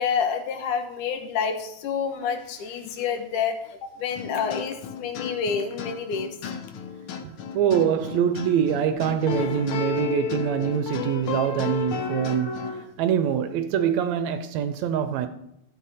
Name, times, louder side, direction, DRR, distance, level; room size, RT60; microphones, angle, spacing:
voice 1, 0.0-6.4, left 6 dB, 80° left, 2.7 m, -28 dB
sound 1, 4.1-12.8, left 6 dB, 65° left, 1.3 m, -32 dB
voice 2, 7.2-12.7 13.0-15.3, right 9 dB, 75° right, 1.7 m, -24 dB
14.0 x 7.3 x 4.1 m
omnidirectional pair, 3.5 m